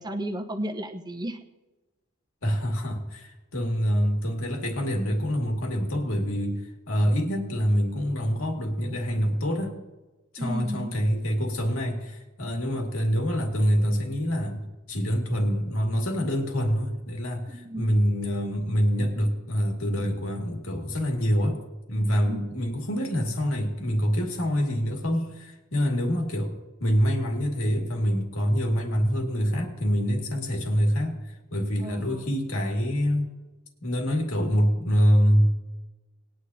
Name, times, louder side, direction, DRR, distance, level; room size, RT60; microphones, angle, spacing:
voice 1, 0.0-1.4 10.4-10.9 17.5-17.9 22.2-22.6 31.8-32.2, right 1 dB, 20° right, 4 dB, 0.9 m, -34 dB
voice 2, 2.4-9.7 10.3-21.6 21.9-26.5 26.8-33.3 33.8-35.5, equal, 85° left, 1 dB, 2.2 m, -26 dB
20.0 x 10.0 x 2.8 m, 1.1 s
head